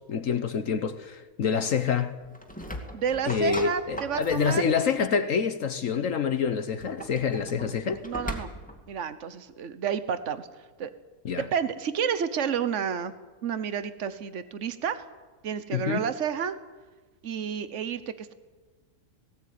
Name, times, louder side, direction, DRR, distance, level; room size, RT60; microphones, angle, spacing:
voice 1, 0.1-2.2 3.3-8.0 11.2-11.4 15.7-16.1, left 6 dB, 65° left, 1.3 m, -27 dB
Opening and Closing of a Fridge, 2.2-5.0 6.6-8.8, equal, 5° left, 2.3 m, -38 dB
voice 2, 2.9-4.6 8.0-8.5 8.9-10.5 10.8-10.9 11.4-13.1 13.4-15.0 15.4-16.6 17.2-18.3, right 7 dB, 55° right, 1.4 m, -30 dB
18.5 x 17.5 x 9.5 m
omnidirectional pair, 1.5 m